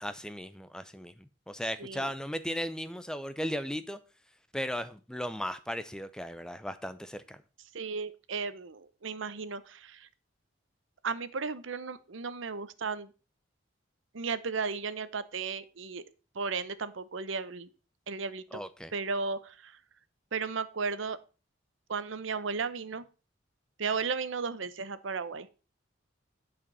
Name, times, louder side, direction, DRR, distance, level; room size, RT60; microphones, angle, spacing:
voice 1, 0.0-4.0 4.5-7.4 18.5-18.9, equal, 5° left, 12 dB, 0.4 m, -36 dB
voice 2, 1.8-2.1 7.7-10.1 11.0-13.1 14.1-16.0 16.3-17.7 18.1-18.6 18.9-19.8 20.3-21.2 21.9-23.0 23.8-25.5, right 5 dB, 75° right, 14 dB, 0.7 m, -35 dB
9.7 x 5.1 x 5.4 m, 0.33 s
head